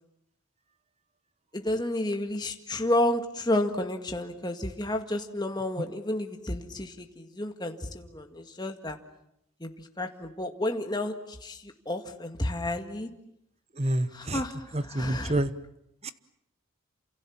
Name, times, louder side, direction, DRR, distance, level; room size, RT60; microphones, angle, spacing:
voice 1, 1.5-9.0 9.6-9.7 10.0-11.2 11.4-13.1 14.1-15.4, left 1 dB, 20° left, 4 dB, 1.9 m, -31 dB
voice 2, 13.8-14.4 14.7-15.5 16.0-16.1, right 1 dB, 30° right, 13 dB, 1.1 m, -28 dB
29.0 x 27.5 x 7.3 m, 0.80 s
head